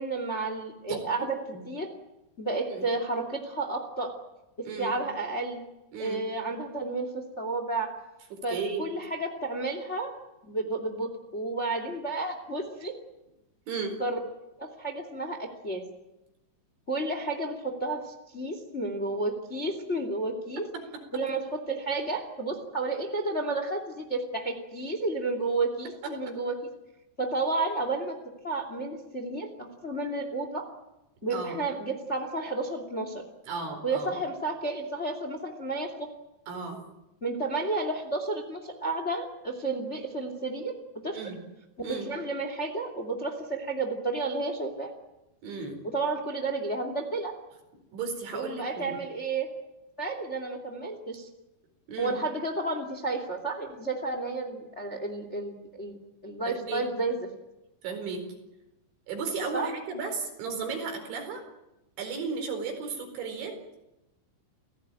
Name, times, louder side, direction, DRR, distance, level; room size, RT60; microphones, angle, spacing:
voice 1, 0.0-1.4 1.6-1.9 2.4-4.1 4.6-5.6 6.0-7.9 8.4-10.1 10.4-12.9 14.0-14.2 14.6-15.8 16.9-20.7 21.1-26.6 27.2-28.1 28.4-30.6 31.2-33.2 33.8-36.1 37.2-40.7 41.0-41.2 41.9-44.9 45.9-47.3 48.3-49.5 50.0-51.3 52.0-56.0 56.2-57.2 59.5-59.7, right 2 dB, 20° left, 6 dB, 1.9 m, -31 dB
voice 2, 0.9-1.3 1.5-1.6 2.7-2.9 4.6-5.0 5.9-6.2 8.3-8.9 13.7-14.0 31.3-31.6 33.5-34.2 36.5-36.8 41.1-41.4 41.8-42.1 45.4-45.8 47.9-48.9 51.9-52.2 56.4-56.8 57.8-58.3 59.1-61.4 62.0-63.5, right 4 dB, 75° right, 5 dB, 6.8 m, -35 dB
29.5 x 17.0 x 9.1 m, 0.95 s
omnidirectional pair, 5.3 m